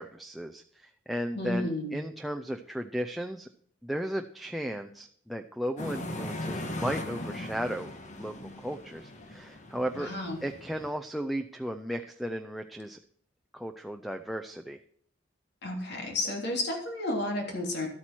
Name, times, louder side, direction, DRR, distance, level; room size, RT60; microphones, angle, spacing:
voice 1, 0.0-3.5 3.8-7.9 8.2-10.1 10.4-13.0 13.5-14.8, equal, ahead, 3 dB, 0.5 m, -35 dB
voice 2, 1.3-2.0 10.0-10.4 15.6-17.9, left 1 dB, 60° left, 2 dB, 3.1 m, -32 dB
sound 1, 5.8-10.9, left 1 dB, 40° left, 1.4 m, -39 dB
12.5 x 8.6 x 4.5 m, 0.63 s
head